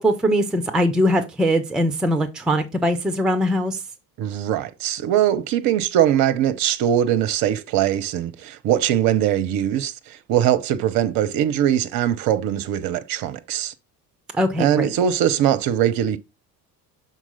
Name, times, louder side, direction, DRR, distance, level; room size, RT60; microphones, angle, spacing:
voice 1, 0.0-3.8 14.3-14.9, equal, ahead, 0.6 m, -21 dB
voice 2, 4.2-13.7 14.6-16.2, right 10 dB, 45° right, 0.7 m, -21 dB
6.0 x 4.0 x 4.0 m
figure-of-eight pair, 60°, 49 cm